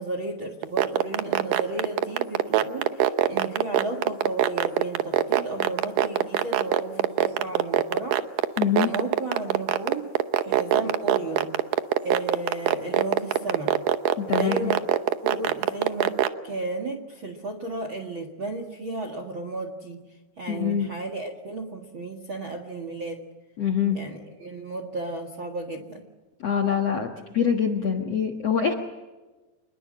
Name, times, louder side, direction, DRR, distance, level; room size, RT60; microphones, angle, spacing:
voice 1, 0.0-8.2 8.8-10.1 10.4-11.5 12.0-13.8 14.3-14.8 15.2-16.2 16.4-20.0 20.4-23.2 23.9-26.0, right 2 dB, 50° right, 6 dB, 1.5 m, -33 dB
sound 1, 0.6-16.3, right 13 dB, 80° right, 1.9 m, -21 dB
voice 2, 8.6-8.9 14.2-14.7 20.5-20.9 23.6-24.0 26.4-28.7, left 7 dB, 60° left, 3 dB, 1.7 m, -24 dB
28.0 x 21.5 x 7.7 m, 1.2 s
omnidirectional pair, 5.1 m